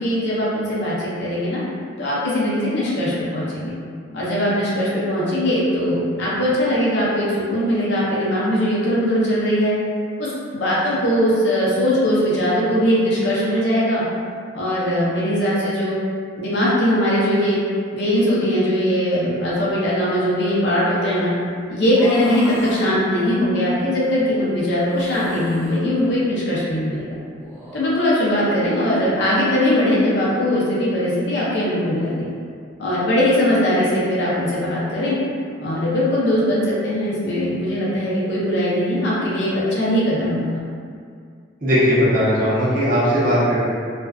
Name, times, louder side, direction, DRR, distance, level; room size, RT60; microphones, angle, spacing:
voice 1, 0.0-1.6 2.0-3.7 4.1-9.8 10.2-14.0 14.5-16.0 16.4-17.6 17.9-21.3 21.7-27.1 27.7-32.3 32.8-35.2 35.6-40.6, equal, 60° left, -8 dB, 0.6 m, -20 dB
sound 1, 21.9-22.9 24.9-25.8 27.3-28.0, left 1 dB, 15° right, 0.4 m, -31 dB
voice 2, 41.6-43.6, equal, 45° right, -10 dB, 0.7 m, -18 dB
2.5 x 2.2 x 2.3 m, 2.2 s
head